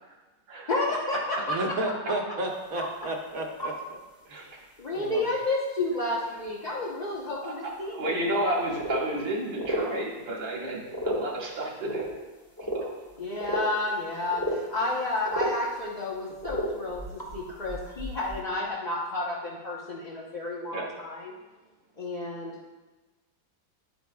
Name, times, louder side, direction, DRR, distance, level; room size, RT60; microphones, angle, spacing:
voice 1, 0.7-1.8 4.8-8.4 13.2-21.4 22.0-22.5, left 2 dB, 35° left, -6 dB, 0.7 m, -31 dB
voice 2, 1.5-4.0 4.3-4.6 4.9-5.2, right 1 dB, 55° right, 1 dB, 1.3 m, -32 dB
sound 1, 2.8-2.9 3.6-3.8 4.1-4.2 4.5-4.6 6.7-6.8 7.9-8.0 8.4-8.5 8.7-9.2 9.6-9.9 10.9-11.3 11.9-12.1 12.6-13.6 13.9-14.0 14.3-14.6 14.9-15.0 15.2-15.6 16.4-18.4, equal, 10° left, 1.3 m, -32 dB
voice 3, 7.4-12.1 12.7-12.9 20.7-20.9, right 1 dB, 85° right, -2 dB, 2.3 m, -31 dB
10.5 x 9.3 x 2.3 m, 1.2 s
omnidirectional pair, 2.0 m